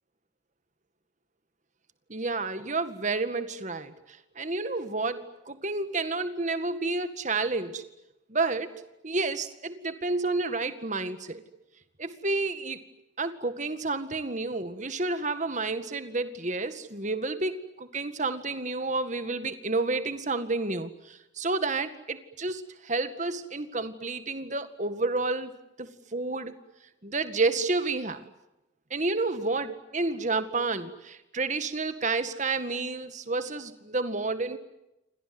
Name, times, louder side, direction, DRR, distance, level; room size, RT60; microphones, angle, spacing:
voice 1, 2.1-7.8 8.3-8.7 9.0-11.4 12.0-12.8 13.2-25.5 25.8-26.6 27.0-28.3 28.9-34.6, right 3 dB, 40° right, 10 dB, 1.9 m, -30 dB
29.5 x 25.5 x 7.9 m, 0.95 s
head